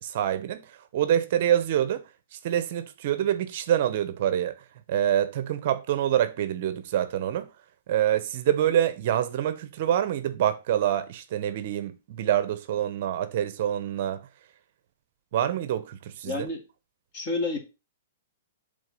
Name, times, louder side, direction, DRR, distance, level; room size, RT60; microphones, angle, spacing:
voice 1, 0.0-2.0 2.3-4.5 4.9-7.5 7.9-14.2 15.3-16.5, right 10 dB, 45° right, 0.7 m, -26 dB
voice 2, 16.2-16.6 17.1-17.6, left 3 dB, 35° left, 2.0 m, -29 dB
7.9 x 3.7 x 5.2 m
hypercardioid pair, 165°, 0 cm